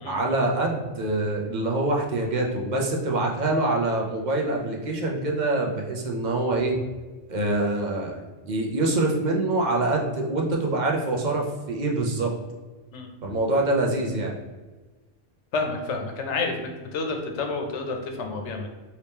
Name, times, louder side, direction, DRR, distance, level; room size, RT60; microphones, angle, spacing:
voice 1, 0.0-6.8 7.3-12.3 13.2-14.3, right 2 dB, 50° right, 0 dB, 0.6 m, -25 dB
voice 2, 15.5-18.7, left 3 dB, 85° left, 3 dB, 0.9 m, -29 dB
2.8 x 2.8 x 3.4 m, 1.2 s
omnidirectional pair, 1.2 m